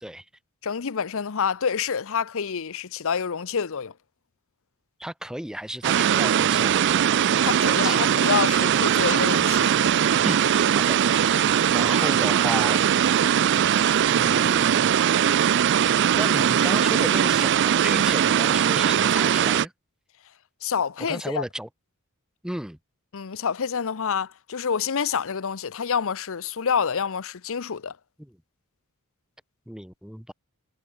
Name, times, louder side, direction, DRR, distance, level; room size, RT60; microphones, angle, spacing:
voice 1, 0.6-3.9 7.4-9.7 20.6-21.4 23.1-28.0, left 6 dB, 65° left, 0.7 m, -27 dB
voice 2, 5.0-6.9 7.6-8.0 10.2-12.9 14.1-15.0 15.3-19.7 21.1-21.7 22.4-22.8 28.2-28.3 29.7-30.3, equal, 5° right, 0.7 m, -34 dB
sound 1, 5.8-19.7, right 9 dB, 55° right, 0.4 m, -20 dB
head